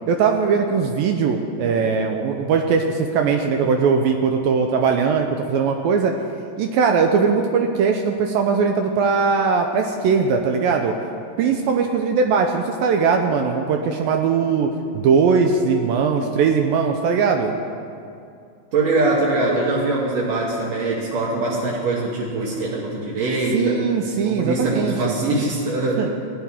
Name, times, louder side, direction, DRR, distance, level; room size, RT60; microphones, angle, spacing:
voice 1, 0.1-6.1 6.6-10.9 11.4-17.6 23.5-25.2 26.0-26.1, right 5 dB, 80° right, 4 dB, 2.2 m, -20 dB
voice 2, 18.7-23.8 24.2-26.0, right 2 dB, 60° right, -5 dB, 1.9 m, -22 dB
17.0 x 11.0 x 3.6 m, 2.4 s
omnidirectional pair, 4.5 m